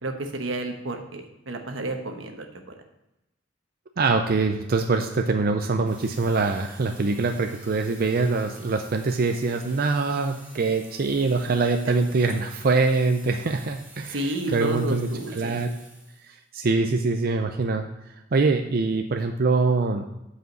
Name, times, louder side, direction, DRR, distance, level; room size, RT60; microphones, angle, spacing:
voice 1, 0.0-2.8 14.1-15.5, right 2 dB, 85° right, 4 dB, 1.1 m, -31 dB
voice 2, 4.0-15.7 16.2-17.8 18.3-20.1, right 3 dB, 50° right, 5 dB, 0.5 m, -24 dB
sound 1, 5.8-16.4, right 2 dB, 10° right, 1.9 m, -49 dB
8.0 x 5.0 x 6.3 m, 0.91 s
head